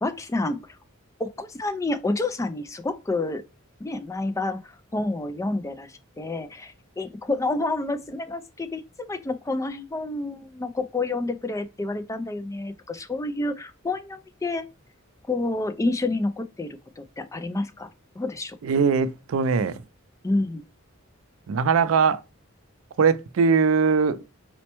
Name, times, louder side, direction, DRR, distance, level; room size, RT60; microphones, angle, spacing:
voice 1, 0.0-0.6 1.2-3.4 3.8-8.8 9.1-14.6 15.3-17.9 18.2-18.6 20.2-20.6, left 2 dB, 15° left, 0.3 m, -29 dB
voice 2, 18.6-19.8 21.5-22.2 23.0-24.2, right 5 dB, 85° right, 0.4 m, -21 dB
4.2 x 2.1 x 2.8 m
head